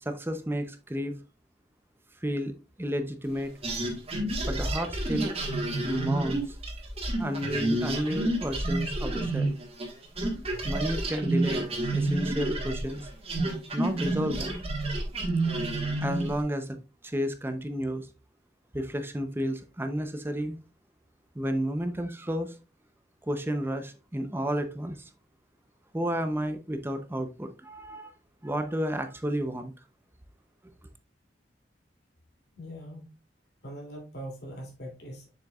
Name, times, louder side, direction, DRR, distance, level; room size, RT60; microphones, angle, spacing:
voice 1, 0.0-1.1 2.2-2.5 2.8-3.5 4.5-5.3 5.8-6.6 7.2-9.5 10.6-13.1 13.7-14.6 16.0-16.8 17.0-18.1 18.7-20.6 21.3-22.6 23.2-25.1 25.9-28.1 28.4-29.7, equal, 15° right, 0.7 m, -31 dB
sound 1, 3.6-9.9 10.2-16.4, right 2 dB, 35° right, 1.6 m, -29 dB
voice 2, 32.5-33.1 33.6-35.3, equal, 65° left, 2.9 m, -41 dB
7.2 x 6.4 x 2.4 m
head